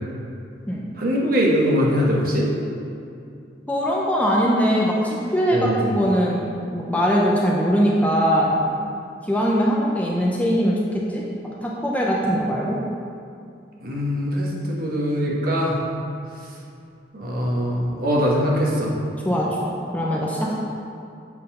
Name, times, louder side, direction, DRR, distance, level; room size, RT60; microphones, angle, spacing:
voice 1, 1.0-2.5 5.5-5.9 13.8-15.8 17.1-18.9, equal, 50° right, -3 dB, 1.3 m, -22 dB
voice 2, 3.7-8.6 9.2-11.2 11.6-12.8 19.2-20.5, equal, 10° left, -4 dB, 0.6 m, -21 dB
7.6 x 3.9 x 5.5 m, 2.5 s
head